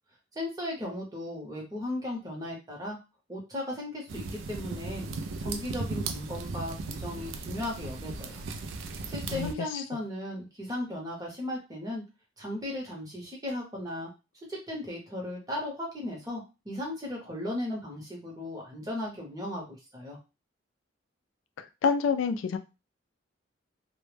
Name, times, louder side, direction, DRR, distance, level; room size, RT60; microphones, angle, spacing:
voice 1, 0.3-3.0 3.3-5.1 5.4-8.4 9.1-12.0 12.4-14.1 14.5-20.2, left 1 dB, 20° right, -2 dB, 0.8 m, -36 dB
sound 1, 4.1-9.5, right 3 dB, 85° right, 0.3 m, -36 dB
voice 2, 9.2-9.8 21.6-22.6, left 5 dB, 90° left, 9 dB, 0.3 m, -28 dB
2.1 x 2.1 x 3.1 m, 0.28 s
head